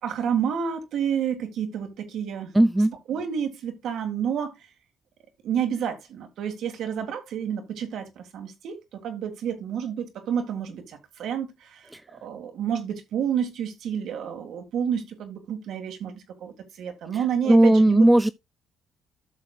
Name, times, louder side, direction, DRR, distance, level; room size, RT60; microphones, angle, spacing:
voice 1, 0.0-2.5 3.1-4.6 5.4-11.9 12.2-18.0, right 8 dB, 75° right, 1.9 m, -29 dB
voice 2, 2.5-2.9 17.5-18.3, right 1 dB, 10° right, 0.4 m, -16 dB
12.5 x 6.5 x 2.3 m
cardioid pair, 90°, 0 cm